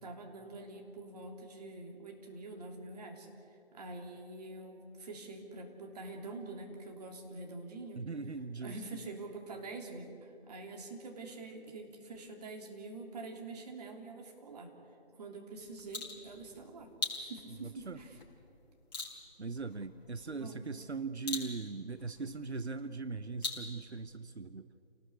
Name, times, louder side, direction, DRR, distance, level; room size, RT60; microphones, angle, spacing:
voice 1, 0.0-8.0 8.6-14.7 15.2-18.2 20.2-20.7, right 2 dB, 40° right, 2 dB, 3.3 m, -46 dB
voice 2, 8.0-8.8 17.5-18.0 19.4-24.7, right 4 dB, 90° right, 12 dB, 1.0 m, -40 dB
sound 1, 15.5-24.2, left 3 dB, 40° left, 4.7 m, -44 dB
28.5 x 18.5 x 8.2 m, 2.7 s
figure-of-eight pair, 155°, 32 cm